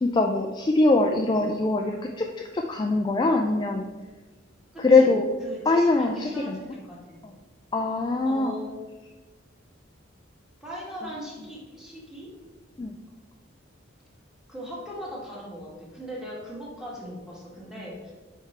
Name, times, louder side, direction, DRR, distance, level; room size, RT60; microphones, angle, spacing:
voice 1, 0.0-3.9 4.8-5.2 5.7-6.6 7.7-8.5 12.8-12.9, left 3 dB, 20° left, 2 dB, 0.3 m, -22 dB
voice 2, 4.7-5.1 5.4-7.2 8.2-8.7 10.6-12.3 14.5-18.1, equal, 5° right, -5 dB, 1.5 m, -39 dB
5.9 x 4.5 x 4.1 m, 1.3 s
head